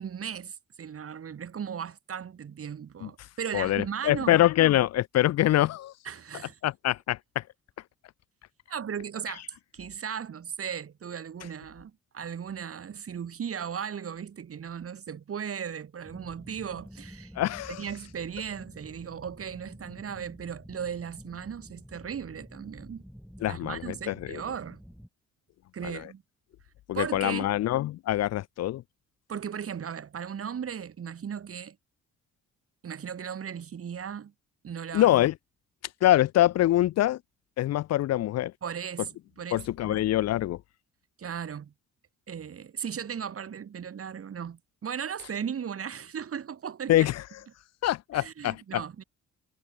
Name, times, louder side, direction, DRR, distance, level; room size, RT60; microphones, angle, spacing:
voice 1, 0.0-4.4 6.0-6.6 8.7-9.4 9.7-17.3 17.7-23.0 23.5-24.8 25.7-26.2 26.9-27.5 29.3-31.8 32.8-34.3 34.6-35.1 38.6-39.1 39.4-40.0 41.2-41.7 42.3-47.1 48.1-49.0, right 7 dB, 50° right, 3.1 m, -37 dB
voice 2, 3.5-5.9 6.6-7.4 17.4-17.8 23.4-24.4 25.8-26.1 26.9-28.8 34.9-35.3 36.0-37.2 37.6-38.5 39.5-40.6 46.9-47.2 47.8-48.8, left 14 dB, 60° left, 0.5 m, -24 dB
sound 1, 16.0-25.1, equal, ahead, 7.6 m, -49 dB
cardioid pair, 90°, 30 cm